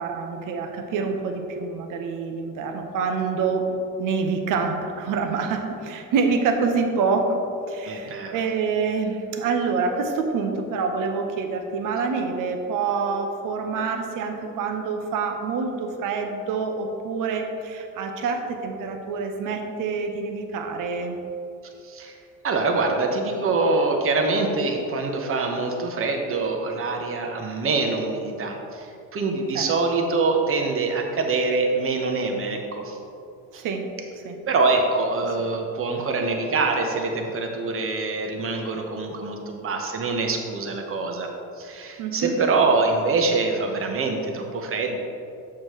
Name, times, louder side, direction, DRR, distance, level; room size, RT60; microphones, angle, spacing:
voice 1, 0.0-3.7 4.0-7.4 7.7-21.2 29.5-29.7 33.5-33.9 34.2-34.4 42.0-42.4, right 5 dB, 60° right, 4 dB, 0.9 m, -26 dB
voice 2, 7.8-8.4 21.8-22.2 22.4-33.0 33.5-33.6 34.5-41.3 41.6-45.0, right 3 dB, 40° right, 3 dB, 1.0 m, -24 dB
7.2 x 6.6 x 3.1 m, 2.7 s
supercardioid pair, 90°, 35 cm